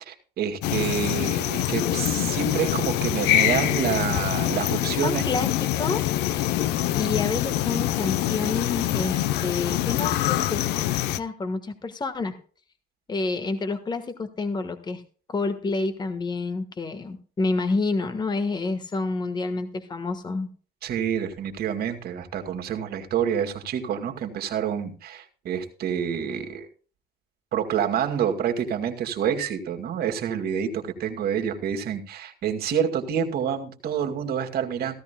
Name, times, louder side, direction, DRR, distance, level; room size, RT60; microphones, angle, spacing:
voice 1, 0.1-5.3 20.8-26.7 27.5-35.0, right 8 dB, 65° right, 4 dB, 2.1 m, -28 dB
sound 1, 0.6-11.2, left 13 dB, 85° left, 0.7 m, -25 dB
voice 2, 5.0-6.1 6.6-10.6 11.0-12.3 13.1-15.0 15.3-20.5, left 3 dB, 25° left, 9 dB, 1.4 m, -29 dB
16.0 x 13.5 x 2.2 m, 0.41 s
cardioid pair, 110°, 17 cm